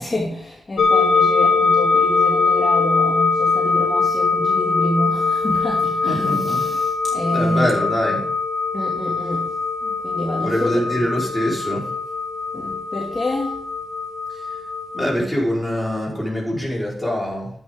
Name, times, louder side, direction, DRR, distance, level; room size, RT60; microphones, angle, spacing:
voice 1, 0.0-7.8 8.7-9.5 9.8-10.8 12.5-13.6, left 1 dB, 25° left, -4 dB, 2.5 m, -27 dB
sound 1, 0.8-15.1, left 4 dB, 75° left, 1.3 m, -21 dB
voice 2, 6.1-6.7 7.3-8.2 10.4-11.9 14.9-17.5, equal, 5° right, -4 dB, 4.8 m, -23 dB
10.5 x 8.0 x 3.8 m, 0.62 s
cardioid pair, 75°, 0 cm